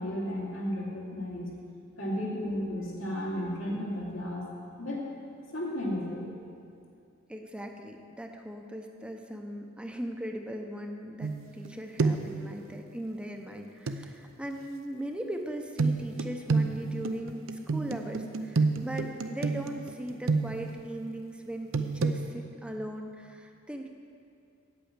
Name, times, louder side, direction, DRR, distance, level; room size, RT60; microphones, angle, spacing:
voice 1, 0.0-1.5 2.0-4.4 4.8-5.0 5.5-6.3, left 1 dB, 80° left, -4 dB, 2.5 m, -33 dB
voice 2, 7.3-23.9, equal, 5° right, 3 dB, 0.6 m, -39 dB
sound 1, 11.2-11.7 12.0-12.4 13.9-14.0 15.8-20.8 21.7-22.2, right 4 dB, 80° right, 0.6 m, -29 dB
8.9 x 8.5 x 7.3 m, 2.4 s
head